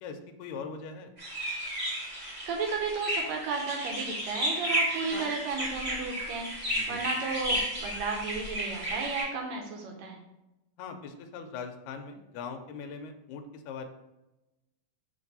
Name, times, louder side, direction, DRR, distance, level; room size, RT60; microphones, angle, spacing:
voice 1, 0.0-1.1 6.8-7.0 10.8-13.8, left 5 dB, 85° left, 5 dB, 2.2 m, -41 dB
sound 1, 1.2-9.2, equal, 45° right, 0.6 m, -33 dB
voice 2, 2.5-10.2, right 4 dB, 75° right, 1 dB, 1.7 m, -34 dB
6.8 x 2.6 x 5.4 m, 0.96 s
omnidirectional pair, 3.8 m